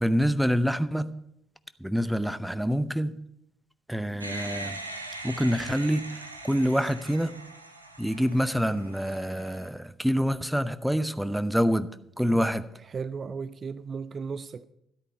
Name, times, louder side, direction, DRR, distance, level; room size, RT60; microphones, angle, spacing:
voice 1, 0.0-1.1 1.8-3.2 3.9-4.8 5.2-7.4 8.0-11.9 12.2-12.6, equal, ahead, 0.7 m, -26 dB
sound 1, 4.2-9.7, right 2 dB, 90° right, 0.8 m, -41 dB
voice 2, 12.8-14.6, right 5 dB, 40° right, 0.4 m, -35 dB
13.5 x 8.5 x 5.4 m
figure-of-eight pair, 45°, 0 cm